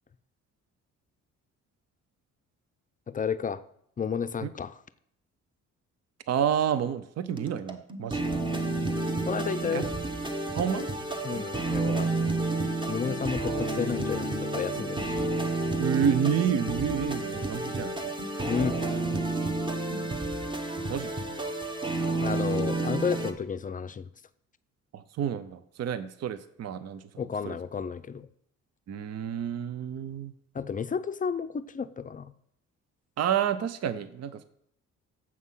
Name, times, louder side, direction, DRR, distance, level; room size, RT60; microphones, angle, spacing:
voice 1, 3.1-3.6 4.0-4.7 9.2-9.9 11.2-12.1 12.9-15.2 18.5-18.8 22.2-24.1 27.2-28.3 30.5-32.3, left 6 dB, 25° left, 13 dB, 0.5 m, -32 dB
voice 2, 6.3-8.3 9.7-9.8 10.5-10.9 15.8-18.5 20.9-21.1 24.9-27.6 28.9-30.3 33.2-34.4, right 8 dB, 55° right, 13 dB, 0.7 m, -30 dB
sound 1, 7.4-23.3, right 2 dB, 15° right, 1.1 m, -30 dB
7.5 x 6.1 x 5.6 m, 0.70 s
cardioid pair, 90°, 30 cm